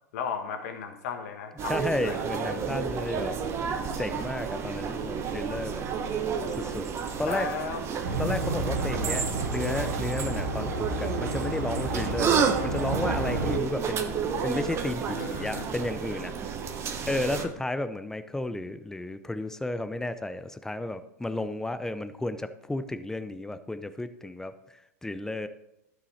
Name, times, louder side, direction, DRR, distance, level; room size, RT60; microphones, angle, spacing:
voice 1, 0.1-2.2 7.2-7.8 15.1-15.6 17.3-17.5, left 6 dB, 65° left, 4 dB, 1.3 m, -35 dB
voice 2, 1.6-3.4 4.0-5.9 6.5-6.9 7.2-7.5 8.2-16.3 17.1-25.5, left 1 dB, 5° left, 11 dB, 0.6 m, -33 dB
sound 1, 1.6-17.5, right 6 dB, 30° right, 1.1 m, -31 dB
sound 2, 8.0-13.6, right 2 dB, 80° right, 1.7 m, -31 dB
12.5 x 5.6 x 4.2 m, 0.88 s
hypercardioid pair, 110°, 9 cm